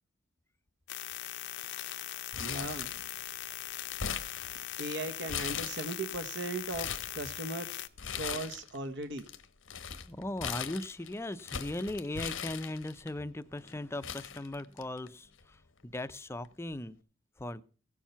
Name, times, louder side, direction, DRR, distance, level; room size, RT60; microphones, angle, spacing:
sound 1, 0.9-7.9, left 13 dB, 60° left, 0.7 m, -41 dB
Crumpling crinkling, 2.3-3.3 3.6-4.9 5.3-6.1 6.5-7.2 8.0-8.8 9.0-13.1 13.7-13.8 14.0-15.1 15.4-15.5 16.4-16.7, left 7 dB, 85° left, 1.1 m, -39 dB
voice 1, 2.4-3.0 4.8-7.7 8.2-9.2, right 2 dB, 65° right, 1.1 m, -37 dB
voice 2, 10.0-17.0 17.4-17.6, left 1 dB, 15° left, 0.5 m, -38 dB
16.5 x 7.3 x 5.7 m
head